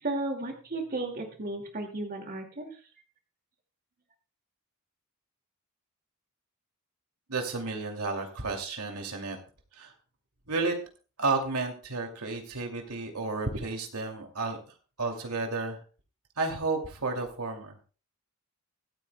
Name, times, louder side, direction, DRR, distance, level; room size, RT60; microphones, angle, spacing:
voice 1, 0.0-2.7, right 2 dB, 40° right, 3 dB, 2.2 m, -34 dB
voice 2, 7.3-9.4 9.7-9.9 10.5-10.8 11.2-14.6 15.0-15.8 16.4-17.7, right 3 dB, 85° right, 3 dB, 2.6 m, -32 dB
24.0 x 9.0 x 2.3 m, 0.36 s
head